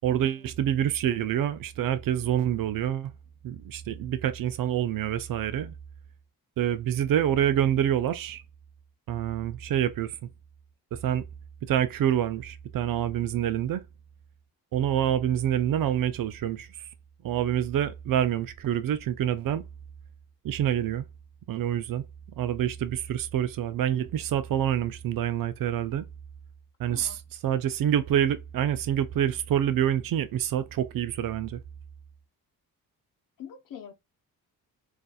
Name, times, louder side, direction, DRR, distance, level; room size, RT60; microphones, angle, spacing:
voice 1, 0.0-3.1 3.4-5.7 6.6-8.4 9.1-10.2 10.9-11.2 11.7-13.8 14.7-16.8 17.2-19.7 20.4-21.1 21.5-22.0 22.4-26.1 26.8-31.6, right 10 dB, 65° right, 0.6 m, -27 dB
voice 2, 26.9-27.2 33.4-33.9, left 8 dB, 65° left, 0.8 m, -44 dB
3.9 x 2.6 x 2.3 m
cardioid pair, 90°, 36 cm